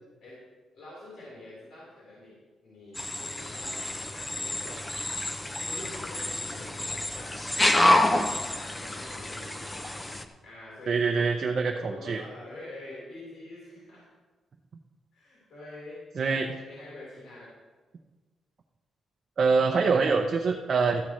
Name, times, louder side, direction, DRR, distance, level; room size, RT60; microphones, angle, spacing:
voice 1, 0.7-4.8 5.7-8.1 8.5-9.9 10.4-11.3 11.6-14.0 15.1-16.0 16.3-17.5, left 2 dB, 65° left, -7 dB, 4.2 m, -46 dB
sound 1, 3.0-10.2, left 1 dB, 15° left, 0.6 m, -28 dB
voice 2, 10.9-12.2 16.2-16.5 19.4-21.0, right 4 dB, 40° right, 1 dB, 0.7 m, -24 dB
14.0 x 12.5 x 3.2 m, 1.3 s
wide cardioid pair, 165°, 0 cm